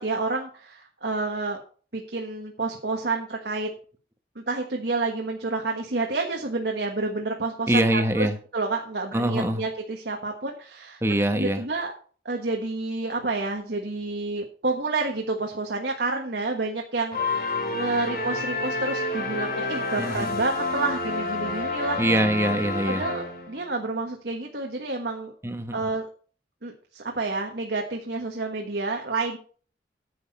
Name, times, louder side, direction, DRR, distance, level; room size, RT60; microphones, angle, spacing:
voice 1, 0.0-1.6 1.9-3.7 4.3-8.3 8.5-11.0 11.3-11.9 12.2-22.0 22.9-25.3 25.7-26.1 26.6-29.4, right 3 dB, 70° right, 2 dB, 1.5 m, -29 dB
voice 2, 7.7-8.4 9.1-9.6 11.0-11.6 20.0-20.3 22.0-23.1 25.4-25.9, right 1 dB, 15° right, 7 dB, 1.2 m, -24 dB
sound 1, 17.1-23.7, left 3 dB, 55° left, 3.0 m, -29 dB
10.0 x 8.0 x 5.4 m, 0.42 s
head